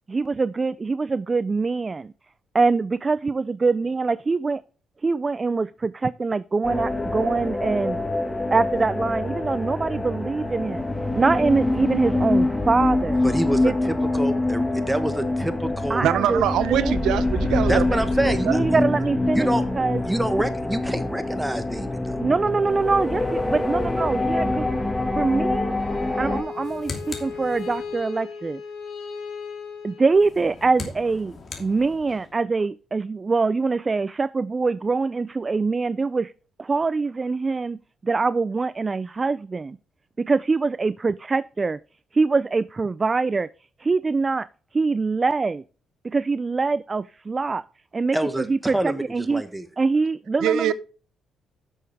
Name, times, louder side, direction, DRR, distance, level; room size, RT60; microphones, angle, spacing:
voice 1, 0.1-2.1 2.5-4.6 5.0-8.0 8.5-10.9 11.2-13.2 13.6-13.8 15.9-16.4 16.7-16.9 18.4-19.5 19.7-20.0 22.1-24.7 25.2-25.7 26.2-28.6 29.8-36.3 36.6-39.8 40.2-41.8 42.1-43.5 43.8-44.5 44.7-45.6 46.0-47.6 47.9-49.4 49.8-50.7, right 4 dB, 30° right, 0.3 m, -24 dB
sound 1, 6.6-26.4, left 2 dB, 10° left, 1.6 m, -25 dB
voice 2, 13.2-16.1 17.7-18.4 18.7-18.8 19.3-19.6 20.1-22.2 48.1-49.0 49.3-49.6, right 1 dB, 5° right, 1.3 m, -27 dB
voice 3, 16.0-18.5 50.4-50.7, right 10 dB, 85° right, 0.6 m, -23 dB
Bowed string instrument, 25.7-30.7, left 5 dB, 70° left, 4.2 m, -37 dB
sound 2, 26.4-28.1 30.1-32.4, left 4 dB, 45° left, 2.7 m, -39 dB
10.5 x 6.6 x 3.5 m
cardioid pair, 90°, 0 cm